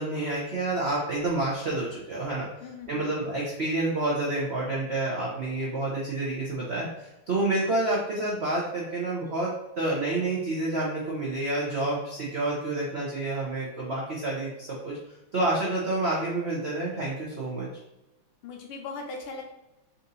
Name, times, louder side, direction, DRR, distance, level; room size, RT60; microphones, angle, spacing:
voice 1, 0.0-2.5 2.9-15.0 15.3-17.7, right 2 dB, 85° right, -4 dB, 0.5 m, -29 dB
voice 2, 2.6-3.2 18.4-19.4, left 4 dB, 80° left, 2 dB, 1.7 m, -39 dB
4.2 x 2.7 x 3.9 m, 0.97 s
omnidirectional pair, 2.4 m